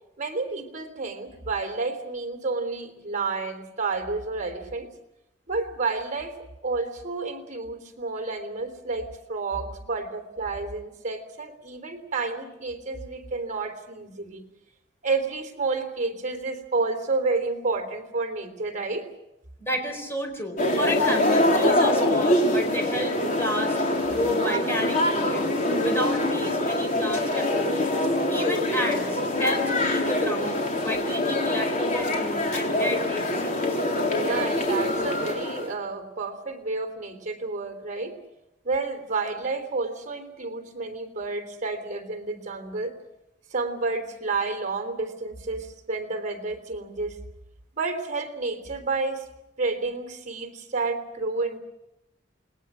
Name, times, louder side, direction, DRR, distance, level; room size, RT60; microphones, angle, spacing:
voice 1, 0.2-4.9 5.5-6.4 6.6-14.4 15.0-19.1 24.4-24.6 34.1-38.2 38.6-42.9 43.5-47.2 47.7-49.3 49.6-51.6, right 3 dB, 45° right, 6 dB, 3.4 m, -30 dB
voice 2, 19.6-23.8 24.1-25.5 25.8-28.0 28.3-33.5, left 1 dB, 15° left, 4 dB, 4.5 m, -31 dB
sound 1, 20.6-35.7, left 1 dB, 45° left, 4.1 m, -24 dB
28.5 x 21.5 x 6.3 m, 0.91 s
head